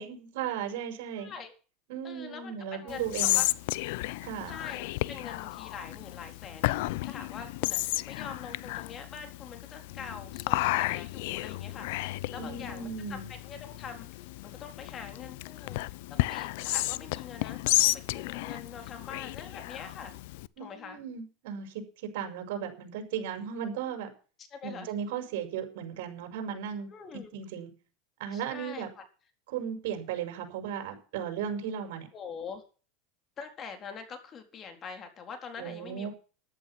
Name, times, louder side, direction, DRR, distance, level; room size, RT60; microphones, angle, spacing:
voice 1, 0.0-1.3 1.9-3.4 4.2-4.5 12.4-13.3 20.6-24.1 24.6-26.9 27.3-27.7 28.2-28.9 29.5-32.1 35.6-36.1, right 8 dB, 75° right, 6 dB, 5.7 m, -36 dB
voice 2, 1.2-1.5 2.0-3.0 3.3-3.4 4.5-6.7 7.0-7.8 8.1-15.8 16.3-20.1 20.6-21.0 24.5-24.9 26.9-27.3 28.3-29.0 32.1-32.6 33.4-36.1, left 6 dB, 30° left, 6 dB, 4.0 m, -44 dB
Whispering, 2.9-20.5, left 19 dB, 70° left, 0.7 m, -32 dB
14.0 x 12.0 x 6.1 m, 0.37 s
supercardioid pair, 125°, 0 cm